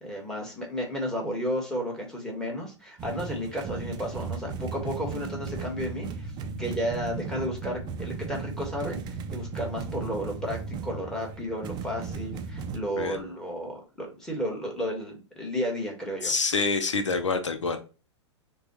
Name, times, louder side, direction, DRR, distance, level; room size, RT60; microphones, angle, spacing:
voice 1, 0.0-6.3 6.6-16.3, equal, 5° left, 1.6 m, -33 dB
sound 1, 3.0-12.8, right 5 dB, 30° right, 0.5 m, -36 dB
voice 2, 16.2-17.8, left 4 dB, 80° left, 0.6 m, -26 dB
5.9 x 2.3 x 3.0 m
figure-of-eight pair, 100°, 15 cm